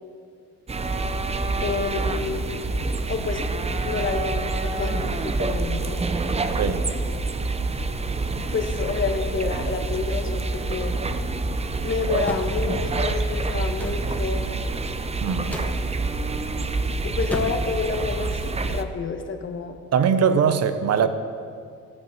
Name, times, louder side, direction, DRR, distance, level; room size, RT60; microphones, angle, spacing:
sound 1, 0.7-18.8, right 3 dB, 20° right, 0.6 m, -27 dB
voice 1, 1.6-2.5 3.1-3.4 3.8-6.0 8.5-11.0 11.8-14.6 17.0-19.8, left 5 dB, 40° left, 5 dB, 1.2 m, -29 dB
sound 2, 12.2-12.6 13.8-14.1 15.5-15.8 17.3-17.7, left 1 dB, 5° left, 1.2 m, -32 dB
voice 2, 15.2-15.5 19.9-21.1, right 7 dB, 55° right, 10 dB, 0.9 m, -21 dB
15.0 x 5.1 x 7.8 m, 2.3 s
cardioid pair, 90°, 30 cm